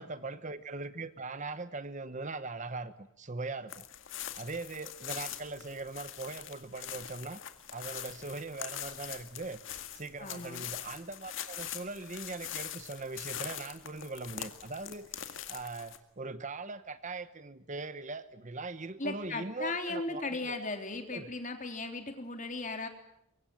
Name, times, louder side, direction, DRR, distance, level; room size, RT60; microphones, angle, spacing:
voice 1, 0.0-3.8 4.4-7.4 7.7-9.6 9.9-20.5 21.1-21.3, right 3 dB, 35° right, 13 dB, 1.0 m, -41 dB
sound 1, 3.7-16.0, left 10 dB, 60° left, 2.1 m, -43 dB
voice 2, 10.2-10.6 19.0-22.9, left 3 dB, 35° left, 6 dB, 3.3 m, -37 dB
24.5 x 23.0 x 9.1 m, 0.77 s
head